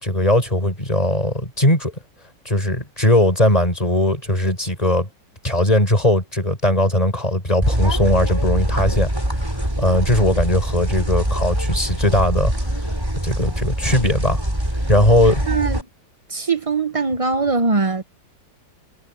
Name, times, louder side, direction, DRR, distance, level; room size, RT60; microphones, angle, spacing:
voice 1, 0.0-1.9 2.5-5.1 5.4-9.1 9.6-12.5 13.2-14.4 14.9-15.4, left 1 dB, 20° left, 5.9 m, -19 dB
sound 1, 7.6-15.8, right 1 dB, 15° right, 4.9 m, -23 dB
voice 2, 15.5-15.8 16.3-18.0, right 4 dB, 35° right, 0.6 m, -21 dB
omnidirectional pair, 1.7 m